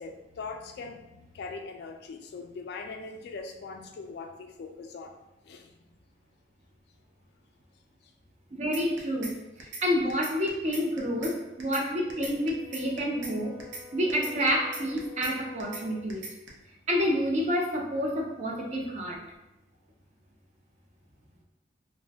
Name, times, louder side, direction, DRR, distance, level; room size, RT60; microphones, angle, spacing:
voice 1, 0.0-5.2 5.4-5.8, left 4 dB, 60° left, 5 dB, 0.3 m, -41 dB
voice 2, 8.5-9.3 9.6-13.6 13.9-16.3 16.9-19.2, equal, 40° right, 0 dB, 0.5 m, -28 dB
sound 1, 8.7-9.3 9.6-9.8 10.1-11.3 11.6-11.8 12.1-13.3 13.6-13.8 14.1-15.3 15.6-15.8 16.1-16.5, right 3 dB, 90° right, 0.5 m, -40 dB
Brass instrument, 11.9-16.2, left 6 dB, 5° left, 0.5 m, -48 dB
2.5 x 2.1 x 3.4 m, 0.94 s
head